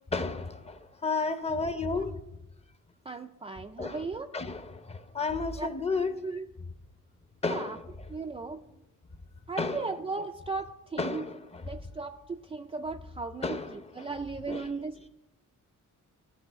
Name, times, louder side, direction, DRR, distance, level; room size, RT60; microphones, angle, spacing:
voice 1, 0.1-2.2 3.8-4.0 4.3-6.1 7.4-7.7 9.6-9.8 11.0-11.4 13.4-14.1 14.5-14.6, left 3 dB, 20° left, 0.7 m, -32 dB
voice 2, 1.6-2.0 3.1-4.3 5.5-5.7 6.2-6.5 7.4-7.8 8.1-8.6 9.5-11.3 11.6-15.1, right 4 dB, 20° right, 0.4 m, -37 dB
13.5 x 5.5 x 8.0 m
cardioid pair, 145°, 32 cm